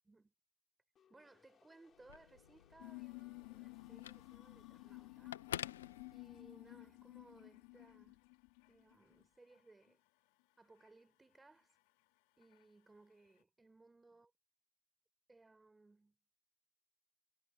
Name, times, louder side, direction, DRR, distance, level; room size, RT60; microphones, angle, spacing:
sound 1, 0.9-8.7, left 8 dB, 25° left, 4.5 m, -72 dB
voice 1, 1.1-5.5 6.1-8.3 8.7-10.0 10.6-11.8 12.4-14.3 15.3-16.2, right 3 dB, 10° right, 4.5 m, -64 dB
Telephone, 1.9-6.7, left 10 dB, 90° left, 1.0 m, -50 dB
sound 2, 2.8-9.2 9.5-10.1 10.8-10.9 11.8-11.9 12.4-12.6, left 29 dB, 55° left, 2.7 m, -54 dB
supercardioid pair, 135°, 0 cm